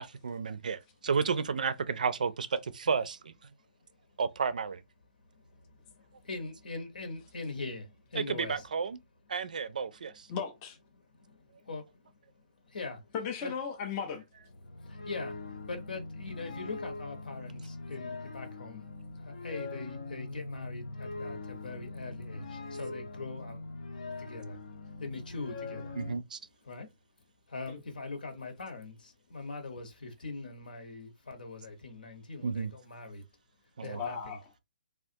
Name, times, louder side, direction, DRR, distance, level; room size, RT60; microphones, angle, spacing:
voice 1, 0.0-3.0 4.2-4.8 8.1-9.0 9.3-10.3 25.9-26.4 32.4-32.7 33.8-34.0, right 5 dB, 60° right, 0.4 m, -32 dB
voice 2, 6.0-8.5 11.2-11.4 11.6-11.9 12.7-13.1 13.4-13.5 14.8-18.9 19.2-23.6 24.2-24.6 25.0-25.9 26.7-26.9 27.5-33.2 33.8-34.4, left 3 dB, 80° left, 1.1 m, -42 dB
voice 3, 10.3-10.8 13.1-14.2 27.7-27.8 33.9-34.5, left 6 dB, 15° left, 0.4 m, -36 dB
sound 1, 14.4-26.2, left 3 dB, 55° left, 0.6 m, -42 dB
3.4 x 2.4 x 2.7 m
hypercardioid pair, 175°, 5 cm